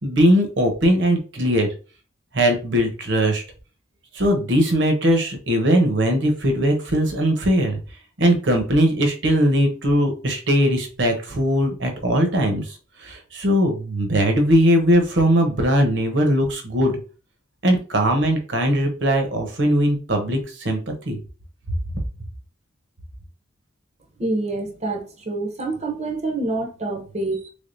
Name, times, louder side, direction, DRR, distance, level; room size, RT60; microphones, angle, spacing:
voice 1, 0.0-1.7 2.3-3.4 4.1-7.8 8.2-12.7 13.0-16.9 17.6-20.8 21.1-21.2, equal, 60° right, 0.9 m, -20 dB
voice 2, 24.2-27.5, right 2 dB, 35° right, 0.7 m, -27 dB
3.6 x 3.4 x 2.6 m
head